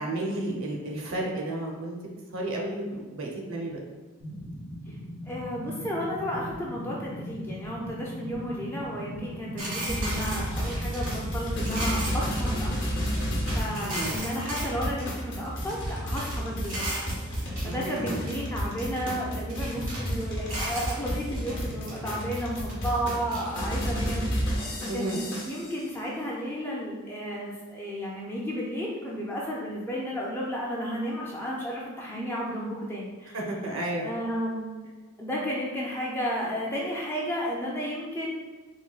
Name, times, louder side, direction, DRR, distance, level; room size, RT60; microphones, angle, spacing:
voice 1, 0.0-2.0 2.3-3.8 13.8-14.2 17.6-18.3 24.9-25.2 33.3-34.1, right 1 dB, 70° right, -1 dB, 0.6 m, -32 dB
sound 1, 4.2-14.2, equal, 80° left, 0.9 m, -40 dB
voice 2, 5.2-16.9 17.2-25.2 25.5-33.4 34.0-34.8 35.2-38.3, equal, 10° left, -4 dB, 0.4 m, -33 dB
sound 2, 9.6-14.7 15.0-16.4 16.6-18.4 18.8-20.1 20.5-21.6 21.9-23.8, right 1 dB, 85° right, 1.1 m, -37 dB
sound 3, 9.9-25.8, equal, 55° left, 0.7 m, -32 dB
3.9 x 2.2 x 2.3 m, 1.3 s
head